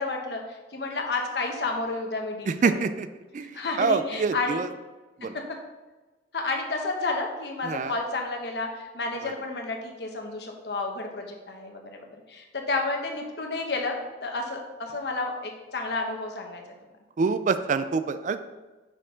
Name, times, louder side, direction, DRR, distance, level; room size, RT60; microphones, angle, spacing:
voice 1, 0.0-2.8 3.5-4.6 6.3-16.6, left 3 dB, 70° left, 2 dB, 1.1 m, -31 dB
voice 2, 2.5-3.1 3.3-4.7 5.2-5.4 7.6-7.9 9.2-9.3 17.2-18.5, right 4 dB, 45° right, 11 dB, 0.3 m, -26 dB
6.1 x 4.5 x 5.0 m, 1.2 s
head